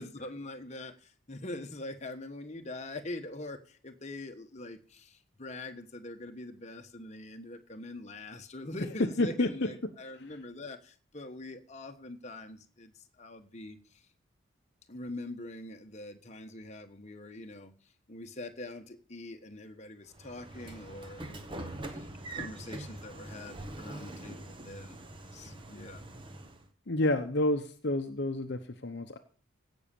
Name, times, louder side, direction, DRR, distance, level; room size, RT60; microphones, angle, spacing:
voice 1, 0.0-13.8 14.9-17.7 18.1-25.0 25.3-26.0, left 2 dB, 35° left, 5 dB, 1.1 m, -44 dB
voice 2, 9.2-9.7 26.9-29.2, left 1 dB, 55° left, 6 dB, 0.9 m, -29 dB
Train / Sliding door, 20.1-26.7, right 2 dB, 25° right, 1.2 m, -44 dB
16.5 x 6.3 x 6.9 m, 0.43 s
head